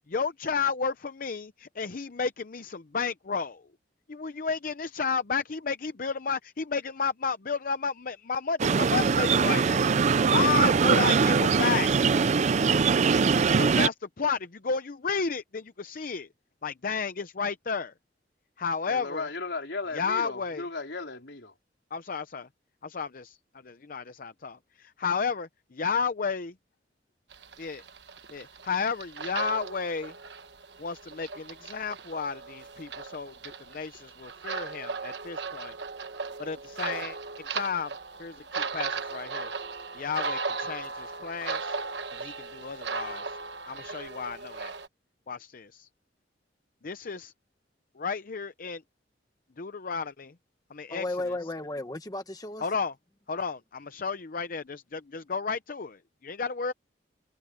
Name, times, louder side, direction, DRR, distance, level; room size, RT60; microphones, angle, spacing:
voice 1, 0.1-3.7 4.1-9.8 10.3-12.1 13.5-16.3 16.6-17.9 18.6-19.3 19.9-20.6 21.9-22.5 22.8-23.4 23.6-26.5 27.6-27.8 28.3-30.1 30.8-33.3 33.7-35.8 36.4-37.2 37.5-37.9 38.2-39.5 39.9-41.8 42.1-43.4 43.7-44.8 45.3-45.9 46.8-47.3 47.9-48.8 49.6-50.3 50.7-51.5 52.6-52.9 53.3-56.7, left 5 dB, 50° left, 0.7 m, -32 dB
sound 1, 8.6-13.9, right 5 dB, 40° right, 0.4 m, -22 dB
voice 2, 18.9-21.5, left 3 dB, 75° left, 4.0 m, -36 dB
sound 2, 27.3-44.9, right 4 dB, 75° right, 1.2 m, -37 dB
voice 3, 50.9-52.6, left 2 dB, 20° left, 1.1 m, -34 dB
head